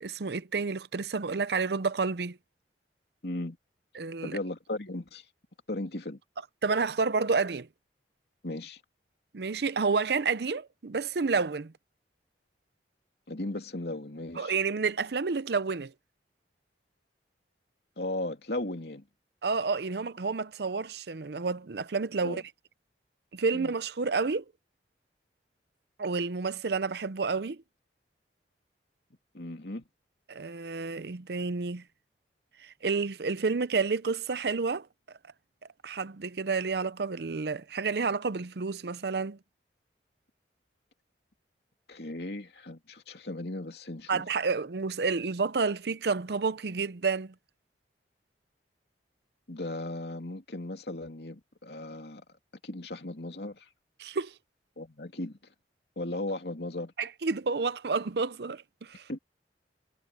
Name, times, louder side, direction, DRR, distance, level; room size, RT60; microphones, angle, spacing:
voice 1, 0.0-2.4 3.9-4.4 6.6-7.7 9.3-11.7 14.4-15.9 19.4-22.4 23.3-24.4 26.0-27.6 30.3-31.8 32.6-34.9 35.8-39.4 44.1-47.3 54.0-54.3 57.0-59.1, right 4 dB, 65° right, 0.6 m, -30 dB
voice 2, 3.2-3.6 4.2-5.3 5.7-6.2 8.4-8.8 13.3-14.5 18.0-19.0 22.2-22.4 23.5-23.7 29.3-29.8 41.9-44.3 49.5-52.2 52.6-53.7 54.8-55.4 56.0-56.9 59.1-59.2, left 1 dB, 65° left, 2.9 m, -36 dB
head